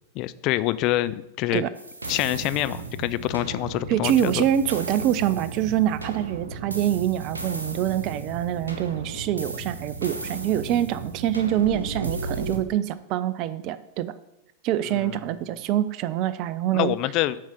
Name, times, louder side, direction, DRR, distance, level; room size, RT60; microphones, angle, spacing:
voice 1, 0.2-1.6 2.1-4.4 14.9-15.1 16.7-17.4, left 16 dB, 40° left, 15 dB, 0.3 m, -26 dB
sound 1, 1.8-12.6, right 3 dB, 80° right, 1.0 m, -35 dB
voice 2, 3.9-14.1 14.6-17.0, right 11 dB, 40° right, 15 dB, 0.4 m, -25 dB
7.2 x 4.8 x 5.5 m, 0.88 s
figure-of-eight pair, 90°, 0 cm